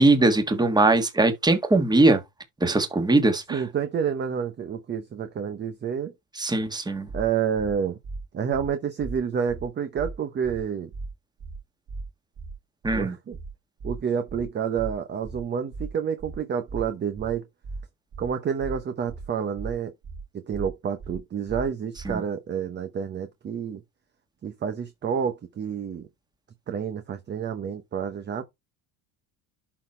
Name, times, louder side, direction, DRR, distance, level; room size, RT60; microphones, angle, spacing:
voice 1, 0.0-2.2 2.6-3.6 6.4-7.1 12.8-13.1 22.0-22.2, right 2 dB, 10° right, 1.6 m, -21 dB
voice 2, 3.5-6.1 7.1-8.0 8.3-10.9 12.9-13.4 13.8-17.5 18.2-19.9 20.3-23.8 24.4-26.1 26.7-28.4, right 7 dB, 25° right, 0.9 m, -29 dB
sound 1, 7.1-7.2 7.6-7.7 8.0-8.2 8.5-8.7 9.0-9.2 9.5-9.6 10.0-10.1 10.4-10.6 10.9-11.1 11.4-11.6 11.9-12.0 12.4-12.5 12.8-13.0 13.3-13.5 13.8-14.0 14.3-14.4 14.8-14.9 15.2-15.4 15.7-15.9 16.2-16.4 16.7-16.8 17.2-17.3 17.6-17.8 18.1-18.3 18.6-18.8 19.1-19.2 19.6-19.7 20.0-20.2 20.5-20.7 21.0-21.2 21.5-21.6 22.0-22.1, right 3 dB, 40° right, 2.9 m, -36 dB
11.5 x 4.1 x 4.3 m
cardioid pair, 155°, 42 cm